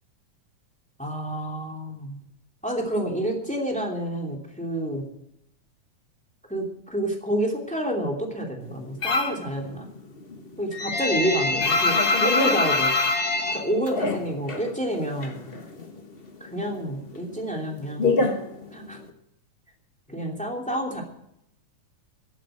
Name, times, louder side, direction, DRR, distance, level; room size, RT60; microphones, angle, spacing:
voice 1, 1.0-2.2 2.6-5.0 6.5-9.9 10.6-12.9 13.5-15.4 16.4-18.3 18.7-19.0 20.1-21.0, right 1 dB, 5° left, 0 dB, 2.5 m, -29 dB
sound 1, 9.0-9.5 9.8-14.7 14.9-16.0 16.3-19.1, left 3 dB, 60° left, 0.5 m, -24 dB
15.5 x 8.8 x 7.9 m, 0.77 s
omnidirectional pair, 3.5 m